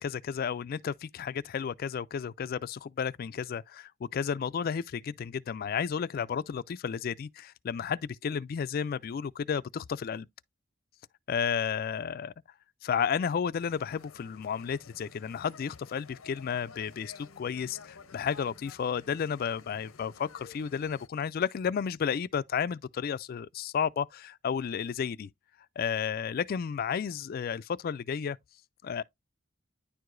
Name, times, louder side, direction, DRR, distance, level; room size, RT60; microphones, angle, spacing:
voice 1, 0.0-10.3 11.3-12.3 12.8-25.3 25.8-28.4 28.8-29.0, left 7 dB, 45° left, 0.3 m, -32 dB
sound 1, 13.6-21.1, left 5 dB, 85° left, 0.7 m, -53 dB
10.0 x 4.7 x 2.5 m
head